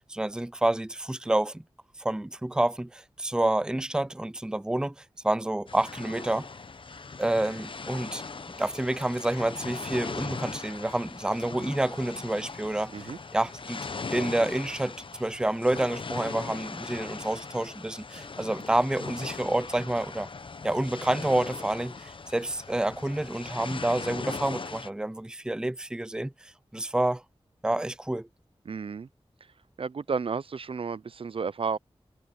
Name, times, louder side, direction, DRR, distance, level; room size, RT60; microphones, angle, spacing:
voice 1, 0.0-1.6 2.0-6.5 7.2-8.2 8.6-13.8 14.1-20.3 20.6-27.2 27.6-28.3, right 1 dB, 5° right, 0.5 m, -28 dB
sound 1, 5.7-24.9, left 4 dB, 55° left, 0.9 m, -39 dB
voice 2, 28.6-29.1 29.8-31.8, right 5 dB, 60° right, 0.5 m, -32 dB
wide cardioid pair, 65°, 10 cm